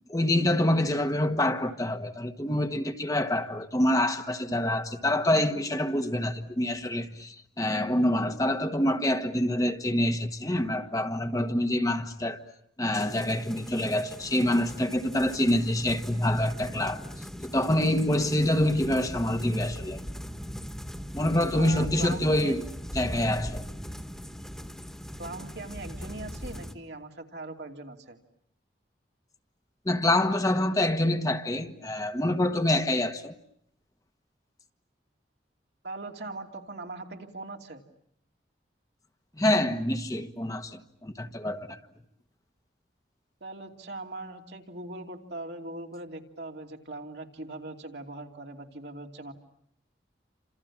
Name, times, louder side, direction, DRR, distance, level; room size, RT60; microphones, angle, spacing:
voice 1, 0.1-12.4 12.8-17.0 17.4-20.0 21.1-22.6 22.9-23.7 29.8-33.3 39.4-41.8, left 1 dB, 20° left, 1.3 m, -26 dB
sound 1, 12.9-26.7, equal, 5° left, 1.6 m, -40 dB
voice 2, 21.5-22.6 25.2-28.2 35.8-37.8 43.4-49.3, right 2 dB, 75° right, 2.8 m, -40 dB
30.0 x 27.0 x 7.4 m
head